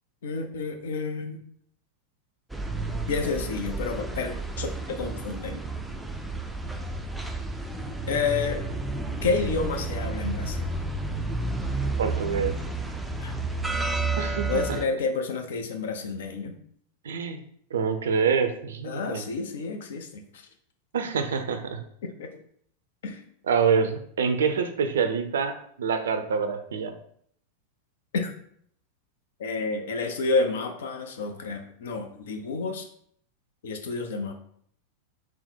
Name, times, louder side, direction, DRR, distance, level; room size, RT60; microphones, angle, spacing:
voice 1, 0.2-1.4 3.1-5.6 8.1-8.6 9.2-10.7 13.2-13.3 14.5-16.6 18.8-20.4 22.0-22.4 23.0-23.2 28.1-28.3 29.4-32.9 33.6-34.3, left 4 dB, 60° left, 6 dB, 0.6 m, -30 dB
sound 1, 2.5-14.8, right 2 dB, 5° right, 0.4 m, -31 dB
voice 2, 12.0-12.5 14.2-14.6 17.0-17.4 17.7-19.2 20.9-21.8 23.5-26.9, right 6 dB, 65° right, 7 dB, 0.4 m, -26 dB
3.6 x 2.1 x 4.3 m, 0.63 s
figure-of-eight pair, 90°, 0 cm